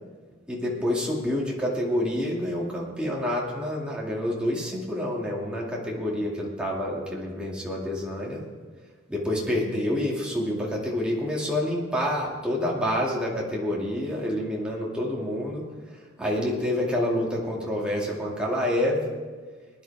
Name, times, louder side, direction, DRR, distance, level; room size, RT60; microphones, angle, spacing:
voice 1, 0.5-8.4 9.1-15.7 16.2-19.1, left 1 dB, 5° right, -4 dB, 2.3 m, -28 dB
20.5 x 10.0 x 3.5 m, 1.4 s
head